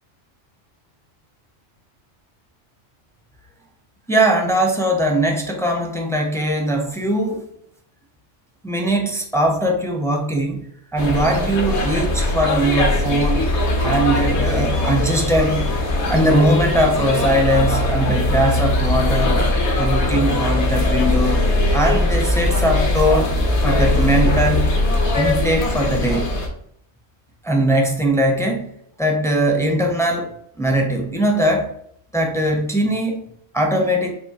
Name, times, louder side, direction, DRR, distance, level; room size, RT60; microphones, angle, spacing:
voice 1, 4.1-7.4 8.6-13.5 13.8-15.7 16.1-19.4 19.8-21.4 21.7-23.3 23.6-24.7 25.1-26.3 27.4-28.6 29.0-30.3 30.6-31.7 32.1-33.2 33.5-34.1, right 1 dB, 5° left, 2 dB, 0.4 m, -20 dB
sound 1, 11.0-26.5, left 1 dB, 65° left, 1.2 m, -20 dB
6.9 x 2.6 x 2.9 m, 0.69 s
omnidirectional pair, 1.3 m